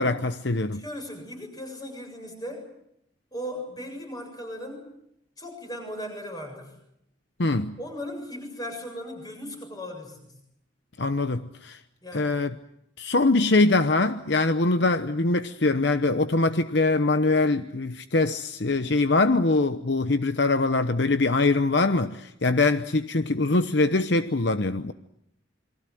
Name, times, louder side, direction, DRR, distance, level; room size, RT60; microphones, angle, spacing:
voice 1, 0.0-0.8 7.4-7.7 11.0-11.8 12.1-12.5 13.0-24.9, left 3 dB, 60° left, 0.9 m, -23 dB
voice 2, 0.7-2.7 3.3-4.9 5.4-6.7 7.8-10.3 12.0-12.4, equal, 20° left, 7.4 m, -37 dB
28.0 x 23.0 x 7.8 m
head